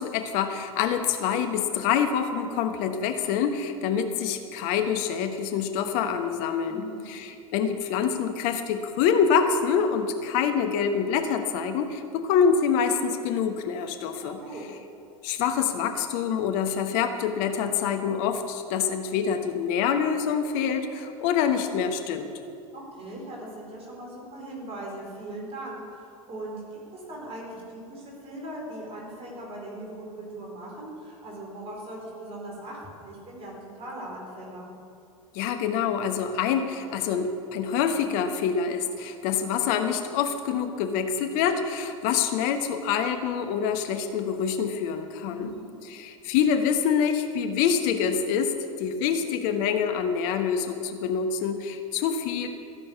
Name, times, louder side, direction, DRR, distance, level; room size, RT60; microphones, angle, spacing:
voice 1, 0.0-14.4 15.2-22.3 35.3-45.5 45.8-48.5 48.8-52.5, left 7 dB, 50° left, 6 dB, 1.2 m, -26 dB
voice 2, 6.7-7.1 14.2-14.7 22.7-34.7 45.3-45.7, right 1 dB, 30° right, -2 dB, 4.4 m, -40 dB
15.0 x 7.6 x 8.6 m, 2.5 s
figure-of-eight pair, 80°, 19 cm